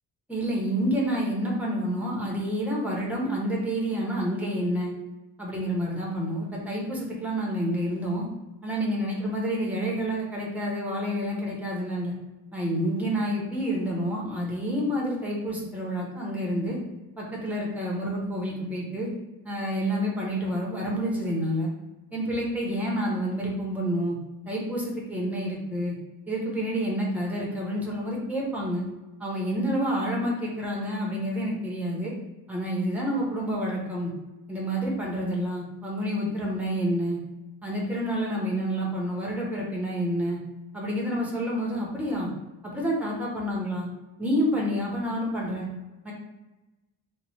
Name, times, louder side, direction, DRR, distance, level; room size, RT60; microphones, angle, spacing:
voice 1, 0.3-4.9 5.4-8.3 8.6-12.1 12.5-16.8 17.2-19.1 19.4-21.7 22.1-24.2 24.5-25.9 26.3-28.8 29.2-32.1 32.5-34.1 34.5-37.2 37.6-40.4 40.7-42.3 42.6-43.9 44.2-45.7 46.0-46.1, equal, 5° right, -3 dB, 0.7 m, -28 dB
2.9 x 2.1 x 4.1 m, 1.1 s
wide cardioid pair, 170°, 38 cm